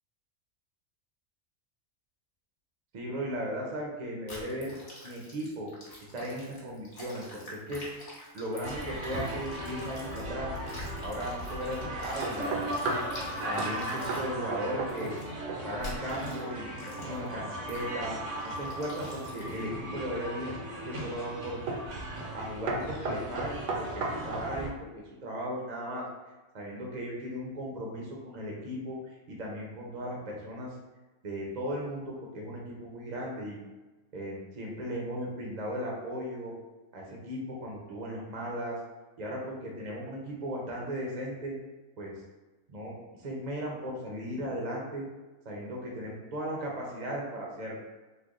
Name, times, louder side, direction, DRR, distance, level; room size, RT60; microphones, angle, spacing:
voice 1, 2.9-4.7 5.0-5.7 6.1-7.8 8.3-10.5 11.0-13.0 13.5-15.1 15.6-16.7 17.0-18.2 18.4-20.5 20.8-21.6 22.3-26.0 26.5-29.0 29.3-30.7 31.2-33.6 34.1-36.5 36.9-38.8 39.2-41.5 42.0-42.1 42.7-42.9 43.2-45.1 45.4-47.8, equal, 45° right, -2 dB, 0.6 m, -36 dB
sound 1, 4.3-10.2 10.5-14.2 14.9-15.2 15.8-16.4 16.8-17.3 17.7-17.9 18.4-19.6, equal, 50° left, 1.0 m, -47 dB
sound 2, 8.6-24.7, right 1 dB, 85° right, 1.3 m, -38 dB
sound 3, 12.2-13.1 13.6-13.8 14.1-14.3 14.5-15.2 15.5-15.9 19.2-19.9 20.5-20.9 21.7-21.9 22.2-22.4 22.7-24.5, right 3 dB, 70° right, 0.9 m, -35 dB
3.3 x 2.2 x 3.6 m, 1.2 s
omnidirectional pair, 1.4 m